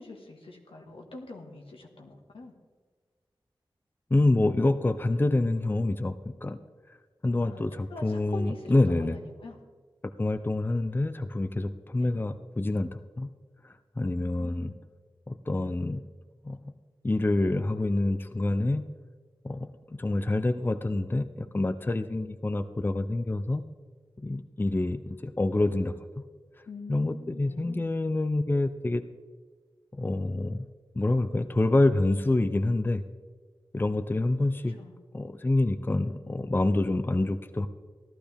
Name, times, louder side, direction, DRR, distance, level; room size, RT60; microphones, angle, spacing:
voice 1, 0.0-2.5 7.4-7.6 7.9-9.6 12.0-12.1 14.1-14.8 26.7-27.9 34.7-34.9, left 3 dB, 85° left, 2 dB, 1.6 m, -44 dB
voice 2, 4.1-6.6 7.2-9.2 10.0-12.9 13.2-13.3 13.6-14.7 15.3-16.1 16.4-16.7 17.0-19.0 19.4-23.6 24.2-26.0 26.9-29.0 29.9-30.7 30.9-33.0 33.7-34.8 35.1-37.7, left 2 dB, 25° left, 10 dB, 0.5 m, -27 dB
15.0 x 12.0 x 3.4 m, 1.5 s
wide cardioid pair, 60°, 9 cm